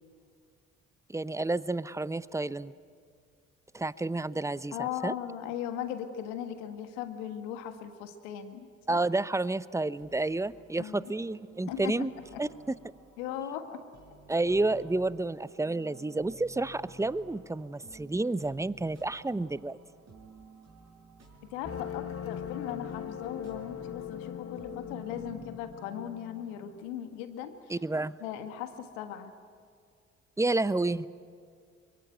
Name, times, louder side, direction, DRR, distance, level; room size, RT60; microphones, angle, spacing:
voice 1, 1.1-2.7 3.7-5.1 8.9-12.1 12.4-12.5 14.3-19.8 27.7-28.1 30.4-31.1, right 2 dB, 10° right, 18 dB, 0.7 m, -30 dB
voice 2, 4.7-9.0 10.8-11.1 11.7-12.1 12.3-12.4 13.2-13.8 21.5-27.8 28.2-29.3, left 10 dB, 80° left, 9 dB, 1.6 m, -38 dB
sound 1, 10.0-25.6, right 3 dB, 45° right, 6.0 m, -54 dB
sound 2, 21.6-26.9, left 9 dB, 40° left, 1.2 m, -40 dB
23.5 x 22.5 x 9.1 m, 2.1 s
hypercardioid pair, 45°, 36 cm